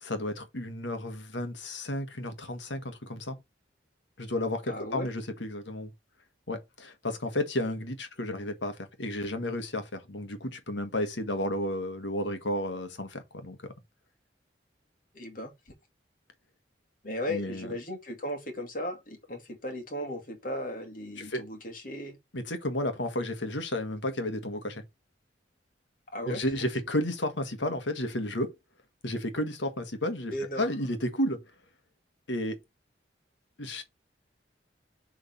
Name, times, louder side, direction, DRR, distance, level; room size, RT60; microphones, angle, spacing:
voice 1, 0.0-3.4 4.2-5.9 6.5-13.6 17.3-17.7 21.2-21.4 22.3-24.8 26.2-28.5 29.0-30.3 30.6-31.4 32.3-32.6 33.6-33.8, left 1 dB, 85° left, 1.6 m, -32 dB
voice 2, 4.7-5.1 15.1-15.7 17.0-22.2 26.1-26.4 30.3-30.7, left 1 dB, 50° left, 2.2 m, -36 dB
7.0 x 3.8 x 5.3 m
head